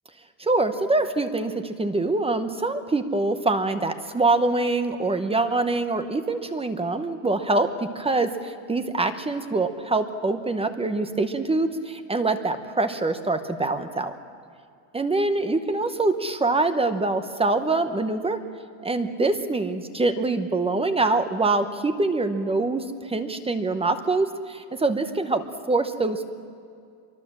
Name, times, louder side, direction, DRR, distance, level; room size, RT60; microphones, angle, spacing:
voice 1, 0.4-7.7 7.9-14.1 14.9-18.4 18.8-26.3, right 3 dB, 10° right, 9 dB, 0.9 m, -24 dB
26.0 x 23.5 x 7.4 m, 2.3 s
cardioid pair, 155°, 50 cm